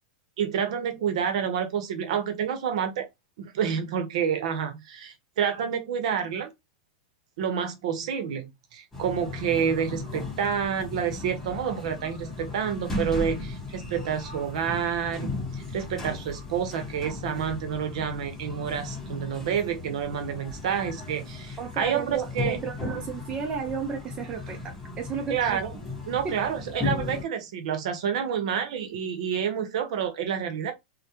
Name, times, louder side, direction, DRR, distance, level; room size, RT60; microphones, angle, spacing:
voice 1, 0.4-3.0 3.4-6.5 7.4-22.6 25.3-25.7 26.1-30.7, right 8 dB, 65° right, 0.7 m, -29 dB
sound 1, 8.9-27.2, left 3 dB, 10° left, 1.0 m, -36 dB
voice 2, 21.6-25.8 26.2-26.4, right 6 dB, 25° right, 0.5 m, -33 dB
2.2 x 2.1 x 2.8 m
hypercardioid pair, 130°, 4 cm